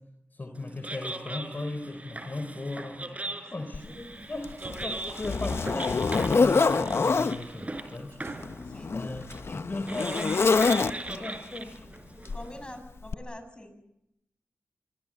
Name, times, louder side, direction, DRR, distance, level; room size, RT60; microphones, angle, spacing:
voice 1, 0.3-3.0 3.5-8.2 8.9-11.8, left 2 dB, 40° left, 6 dB, 4.0 m, -37 dB
sound 1, 0.6-12.8, right 2 dB, 30° right, 5.2 m, -40 dB
sound 2, 1.4-1.6 4.5-5.3 6.6-6.9 7.3-7.5 7.9-8.7 10.0-10.6 11.6-11.7, right 4 dB, 70° right, 1.7 m, -49 dB
voice 2, 3.2-4.1 8.6-8.9 12.3-13.8, left 1 dB, 20° left, 8 dB, 7.8 m, -45 dB
Zipper (clothing), 3.7-3.9 4.4-7.4 8.3-11.3 12.3-12.5 13.1-13.2, left 4 dB, 65° left, 1.1 m, -26 dB
25.0 x 24.0 x 7.7 m, 0.81 s
cardioid pair, 55°, 5 cm